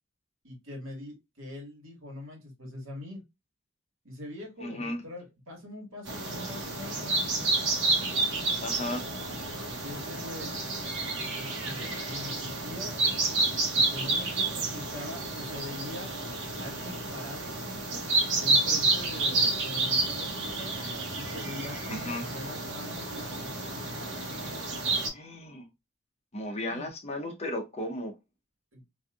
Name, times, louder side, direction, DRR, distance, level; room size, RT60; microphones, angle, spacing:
voice 1, 0.4-3.2 4.0-7.3 9.6-10.6 11.3-13.0 13.7-16.1 16.6-18.0 18.4-20.7 21.1-23.5 26.7-26.9 28.7-28.8, left 1 dB, 80° right, 1.5 m, -43 dB
voice 2, 4.6-5.0 8.6-9.0 21.9-22.2 25.1-25.7 26.3-28.1, left 1 dB, 30° left, 0.7 m, -35 dB
sound 1, 6.1-25.1, right 3 dB, 65° right, 1.1 m, -30 dB
3.1 x 2.6 x 2.3 m
head